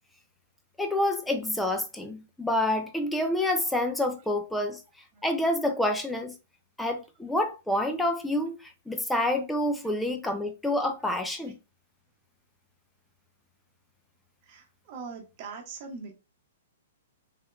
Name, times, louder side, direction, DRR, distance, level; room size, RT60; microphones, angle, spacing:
voice 1, 0.8-4.8 5.2-6.3 6.8-11.5, left 1 dB, 5° left, 0.6 m, -28 dB
voice 2, 14.5-16.1, right 4 dB, 45° right, 1.2 m, -41 dB
3.4 x 2.8 x 2.3 m
hypercardioid pair, 130°, 0 cm